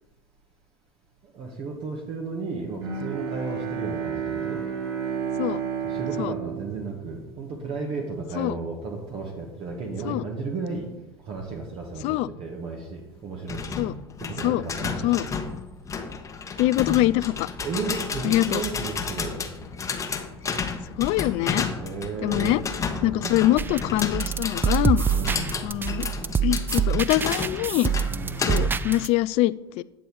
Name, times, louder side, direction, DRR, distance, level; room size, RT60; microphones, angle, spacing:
voice 1, 1.3-4.6 5.8-10.9 11.2-13.8 14.2-15.3 17.6-19.4 21.8-22.6 23.0-23.4 25.1-25.5 28.1-28.4, right 4 dB, 45° right, 0 dB, 1.6 m, -34 dB
Bowed string instrument, 2.8-8.1, right 7 dB, 80° right, 2.0 m, -31 dB
sound 1, 13.5-28.9, left 5 dB, 25° left, 1.2 m, -32 dB
voice 2, 16.6-17.5 18.2-18.6 21.0-21.7 22.2-22.6 23.0-25.0 25.6-26.1 26.4-27.9 28.5-29.8, left 16 dB, 50° left, 18 dB, 0.4 m, -24 dB
sound 2, 23.6-29.1, right 7 dB, 15° right, 0.4 m, -26 dB
9.3 x 6.9 x 4.7 m, 0.93 s
hypercardioid pair, 85°, 13 cm